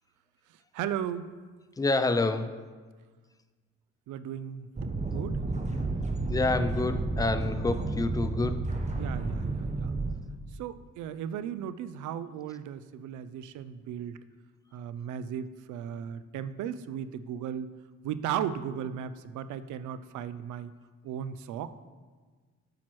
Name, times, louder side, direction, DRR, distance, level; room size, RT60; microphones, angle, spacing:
voice 1, 0.7-1.3 4.1-5.4 9.0-9.9 10.5-14.2 14.7-17.7 18.0-20.7 21.0-21.7, right 9 dB, 75° right, 13 dB, 0.5 m, -36 dB
voice 2, 1.8-2.6 6.3-8.6, left 3 dB, 10° left, 10 dB, 0.3 m, -28 dB
sound 1, 4.7-10.1, right 3 dB, 25° right, 0.9 m, -31 dB
8.6 x 5.9 x 3.1 m, 1.4 s
cardioid pair, 90°, 30 cm